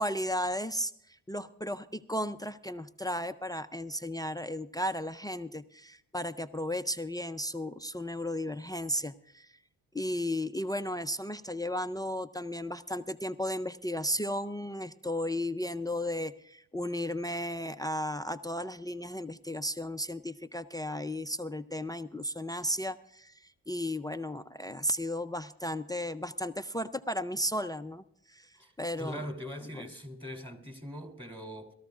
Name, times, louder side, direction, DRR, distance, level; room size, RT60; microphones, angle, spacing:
voice 1, 0.0-9.5 9.9-28.5 28.8-29.3 29.8-29.9, equal, 10° left, 0.4 m, -34 dB
voice 2, 29.0-31.7, equal, 15° right, 2.9 m, -41 dB
22.5 x 13.5 x 2.4 m
cardioid pair, 75°, 39 cm